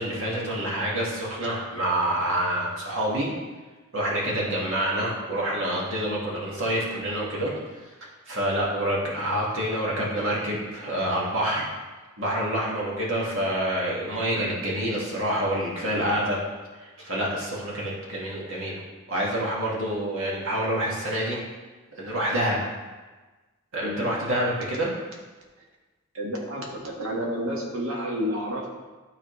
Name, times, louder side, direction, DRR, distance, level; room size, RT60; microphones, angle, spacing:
voice 1, 0.0-3.3 3.9-7.5 8.3-11.7 12.2-16.4 16.8-18.8 19.1-21.4 22.0-22.6 23.7-24.9, right 1 dB, 65° right, -4 dB, 1.9 m, -27 dB
voice 2, 26.1-26.6 27.0-28.7, equal, 80° right, -2 dB, 1.6 m, -29 dB
12.0 x 4.1 x 3.2 m, 1.3 s
head